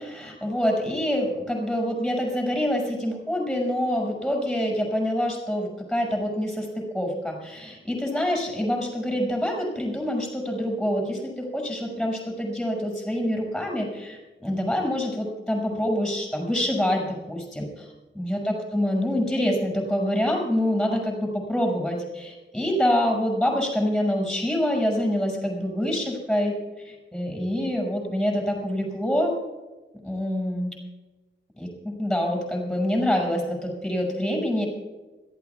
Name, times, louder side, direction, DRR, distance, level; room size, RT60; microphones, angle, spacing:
voice 1, 0.0-17.9 18.1-26.5 26.8-29.3 30.0-30.7 31.6-34.7, equal, ahead, 0 dB, 6.3 m, -26 dB
26.0 x 15.5 x 2.4 m, 1.2 s
wide cardioid pair, 165°, 19 cm